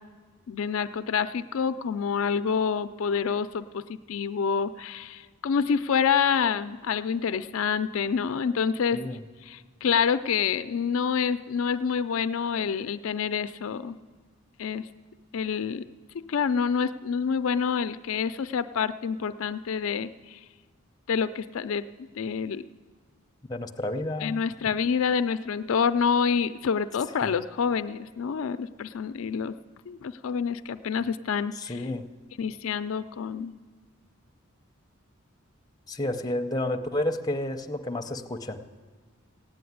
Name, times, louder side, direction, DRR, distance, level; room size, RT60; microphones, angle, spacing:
voice 1, 0.5-9.0 9.5-14.0 14.6-14.9 15.3-15.8 16.1-20.4 21.1-21.9 22.1-22.6 24.2-29.5 29.9-31.7 32.4-33.5, left 6 dB, 75° left, 12 dB, 0.4 m, -27 dB
voice 2, 23.5-24.4 31.5-32.1 35.9-38.6, left 1 dB, 20° left, 5 dB, 0.7 m, -30 dB
16.0 x 8.5 x 9.4 m, 1.5 s
head